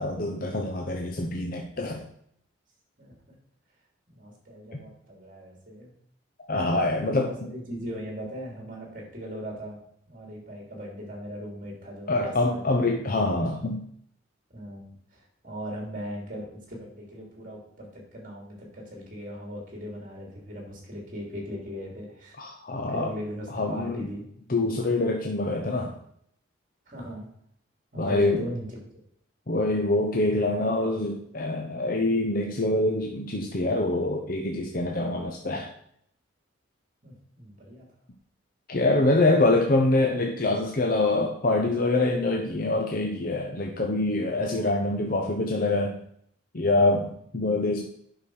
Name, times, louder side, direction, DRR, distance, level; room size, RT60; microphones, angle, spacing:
voice 1, 0.0-2.0 6.5-7.3 12.1-13.8 22.4-23.1 23.5-24.1 24.5-25.9 28.0-28.5 29.5-35.7 38.7-46.0 46.5-47.9, left 2 dB, 45° left, 1 dB, 0.8 m, -25 dB
voice 2, 3.0-3.3 4.1-5.9 6.5-9.8 10.1-12.8 14.5-22.4 22.9-24.2 26.9-27.3 27.9-28.8 37.0-37.8 44.3-44.8, equal, 40° right, 0 dB, 3.1 m, -39 dB
8.6 x 5.9 x 4.8 m, 0.67 s
head